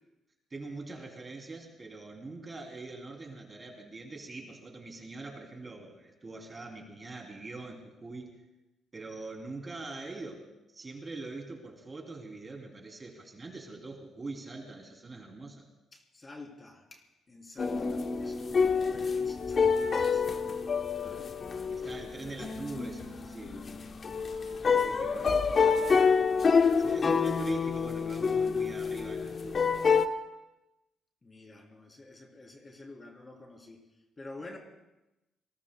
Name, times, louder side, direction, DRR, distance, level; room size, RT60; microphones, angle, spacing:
voice 1, 0.5-8.3 8.9-15.6 21.0-21.4 21.7-23.7 24.4-25.8 26.8-29.6, right 3 dB, 30° right, 1 dB, 3.0 m, -43 dB
voice 2, 15.9-21.4 21.7-22.4 24.6-26.5 26.7-27.5 31.2-33.8 34.2-34.6, left 2 dB, 25° left, 1 dB, 3.3 m, -50 dB
sound 1, 17.6-30.1, left 5 dB, 45° left, 0.9 m, -27 dB
27.5 x 20.0 x 2.2 m, 0.96 s
cardioid pair, 90°, 0 cm